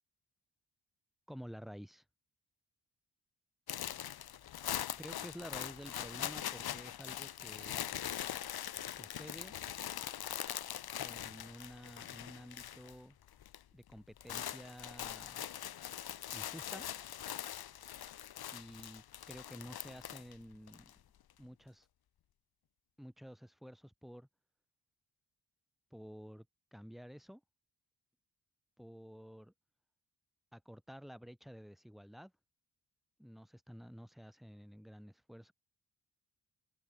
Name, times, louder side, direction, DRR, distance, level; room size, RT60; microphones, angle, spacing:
voice 1, 1.3-2.0 5.0-7.9 8.9-9.5 11.0-13.2 13.7-15.5 16.3-16.9 18.5-20.9 21.4-21.9 23.0-24.3 25.9-26.5 26.7-27.4 28.8-29.5 30.5-32.3 33.2-35.5, equal, ahead, 1.6 m, -51 dB
sound 1, 3.7-13.0 13.2-13.6 13.9-20.9, left 11 dB, 60° left, 0.9 m, -42 dB
wide cardioid pair, 170°, 42 cm